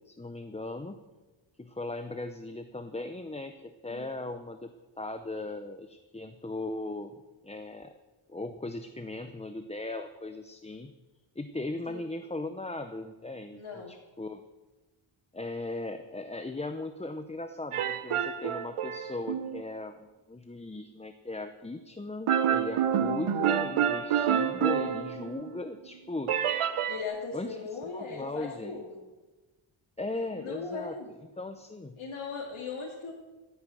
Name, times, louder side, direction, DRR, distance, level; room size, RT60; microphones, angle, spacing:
voice 1, 0.1-1.0 1.6-7.2 7.4-7.9 8.3-10.9 11.4-14.4 15.3-26.3 27.3-27.6 27.9-28.8 30.0-31.0 31.4-32.0, left 2 dB, 15° left, 8 dB, 0.6 m, -38 dB
voice 2, 3.9-4.3 11.9-12.0 13.5-13.9 26.9-29.0 30.0-31.1 31.9-33.1, left 4 dB, 70° left, -3 dB, 2.4 m, -39 dB
sound 1, 17.7-19.6 22.3-25.6 26.3-27.0, right 9 dB, 90° right, 0.9 m, -28 dB
16.0 x 9.1 x 7.8 m, 1.2 s
wide cardioid pair, 125°, 50 cm